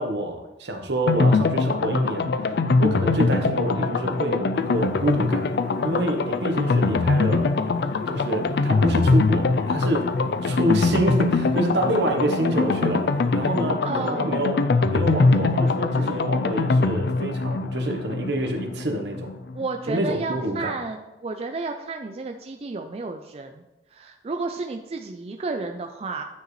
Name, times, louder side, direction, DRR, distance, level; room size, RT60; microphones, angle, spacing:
voice 1, 0.0-5.4 5.8-7.5 8.1-10.1 10.4-13.1 13.3-14.6 14.9-19.3 19.9-20.7, right 1 dB, 75° right, 3 dB, 1.0 m, -27 dB
sound 1, 1.1-19.7 20.0-20.1 20.3-20.4, left 3 dB, 65° left, 0.4 m, -23 dB
sound 2, 4.5-13.7, left 1 dB, 5° right, 1.8 m, -41 dB
voice 2, 13.8-14.3 19.5-23.6 23.9-26.2, right 3 dB, 35° right, 4 dB, 0.4 m, -32 dB
9.2 x 4.9 x 3.1 m, 1.0 s
head